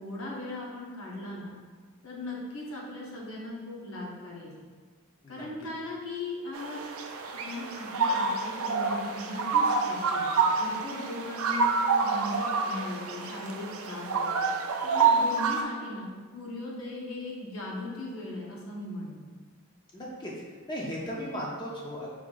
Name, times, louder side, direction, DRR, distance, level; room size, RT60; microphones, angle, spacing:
voice 1, 0.0-1.6 2.0-4.5 5.3-6.8 7.3-14.5 14.8-19.2, left 2 dB, 70° left, -4 dB, 1.1 m, -38 dB
sound 1, 6.5-15.6, right 4 dB, 70° right, 0.4 m, -28 dB
voice 2, 19.9-20.3 20.7-22.1, equal, 20° left, -4 dB, 0.6 m, -36 dB
4.6 x 2.7 x 3.9 m, 1.5 s
head